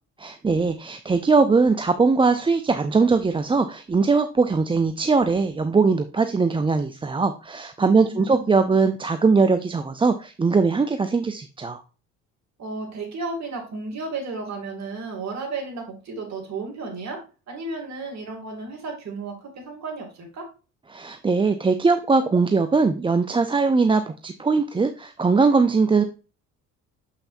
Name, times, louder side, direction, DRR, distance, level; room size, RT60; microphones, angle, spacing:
voice 1, 0.2-11.8 20.9-26.0, right 4 dB, 15° right, 9 dB, 0.5 m, -20 dB
voice 2, 7.8-8.6 12.6-17.2 17.5-20.5, right 3 dB, 55° right, 1 dB, 2.7 m, -33 dB
6.9 x 5.7 x 2.6 m, 0.33 s
supercardioid pair, 80°, 33 cm